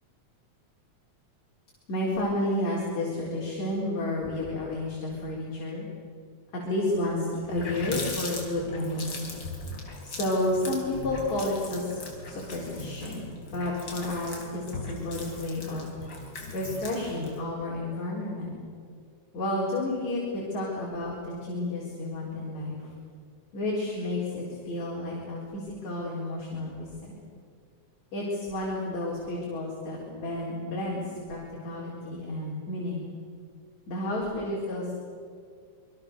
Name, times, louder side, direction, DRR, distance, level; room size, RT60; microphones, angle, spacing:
voice 1, 1.9-5.9 6.5-9.5 10.0-12.0 12.3-15.9 16.5-18.5 19.3-22.9 23.5-27.1 28.1-31.0 31.3-33.1 33.9-35.0, left 1 dB, 65° left, -5 dB, 5.6 m, -31 dB
Water tap faucet, 7.0-7.1 7.3-17.4, left 3 dB, 35° left, 4.4 m, -39 dB
27.0 x 23.0 x 6.9 m, 2.2 s
omnidirectional pair, 3.4 m